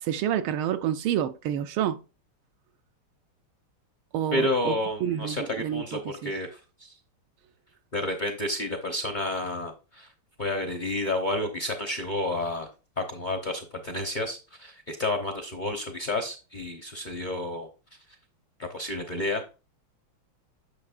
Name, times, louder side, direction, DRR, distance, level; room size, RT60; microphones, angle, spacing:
voice 1, 0.0-2.0 4.1-4.8 5.0-6.3, right 10 dB, 80° right, 1.4 m, -28 dB
voice 2, 4.3-7.0 7.9-10.1 10.4-12.7 13.0-17.7 18.6-19.4, left 1 dB, 45° left, 0.6 m, -30 dB
8.6 x 6.5 x 2.5 m
omnidirectional pair, 2.4 m